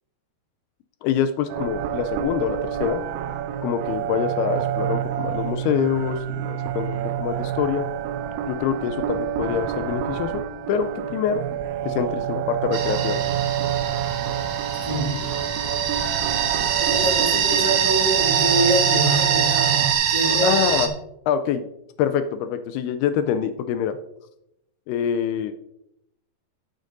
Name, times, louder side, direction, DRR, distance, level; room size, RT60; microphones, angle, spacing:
voice 1, 1.0-3.0 3.6-7.9 8.5-10.4 10.7-11.4 11.8-13.2 20.4-20.9 21.3-21.6 22.0-24.0 24.9-25.5, left 8 dB, 85° left, 10 dB, 2.5 m, -25 dB
sound 1, 1.5-19.9, right 10 dB, 85° right, 2.6 m, -28 dB
sound 2, 12.7-20.9, right 8 dB, 65° right, 2.0 m, -23 dB
voice 2, 14.7-15.2 16.8-20.8, right 1 dB, 10° left, -3 dB, 2.6 m, -25 dB
12.5 x 6.6 x 3.9 m, 0.82 s
omnidirectional pair, 4.6 m